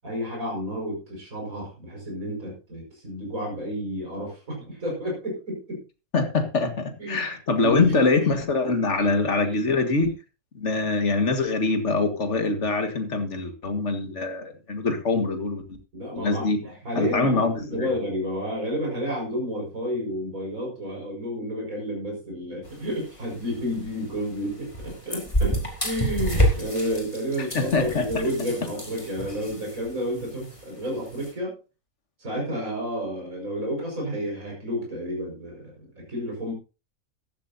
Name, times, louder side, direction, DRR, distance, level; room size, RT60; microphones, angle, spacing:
voice 1, 0.0-5.8 7.0-7.3 7.6-8.0 9.0-9.2 9.5-9.6 15.9-31.6 32.2-36.5, equal, 70° right, -1 dB, 5.7 m, -31 dB
voice 2, 6.1-10.1 10.5-15.6 16.2-16.6 17.0-17.9 27.4-28.0, left 3 dB, 55° left, 7 dB, 2.0 m, -24 dB
sound 1, 22.6-31.3, equal, 20° left, 3.1 m, -30 dB
14.5 x 12.0 x 2.7 m, 0.31 s
omnidirectional pair, 1.5 m